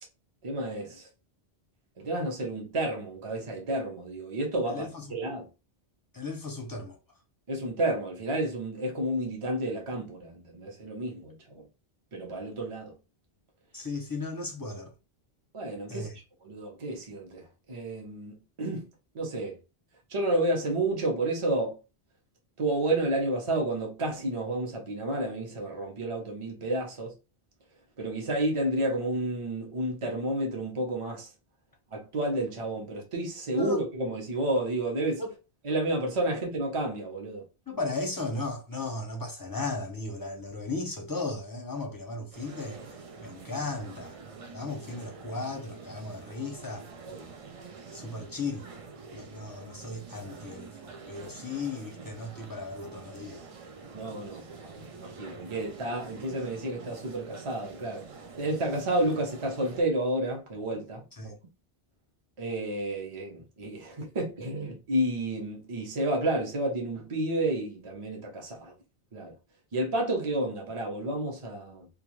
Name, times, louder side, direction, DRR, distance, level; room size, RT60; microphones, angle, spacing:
voice 1, 0.4-1.1 2.0-5.5 7.5-11.7 12.1-12.9 15.5-18.9 19.1-19.6 20.1-21.8 22.6-27.1 28.0-31.3 31.9-35.2 35.6-37.4 47.0-47.3 53.9-58.1 58.4-61.3 62.4-68.7 69.1-69.3 69.7-71.9, right 1 dB, 35° right, 0.7 m, -31 dB
voice 2, 4.7-5.2 6.1-7.0 13.7-14.9 15.9-16.1 33.5-33.8 35.2-35.3 37.7-42.8 43.2-44.2 44.5-46.9 47.9-48.7 49.1-53.4 61.2-61.3, left 3 dB, 25° left, 0.5 m, -36 dB
sound 1, 42.3-59.8, right 4 dB, 55° right, 0.4 m, -46 dB
2.4 x 2.4 x 3.0 m
omnidirectional pair, 1.1 m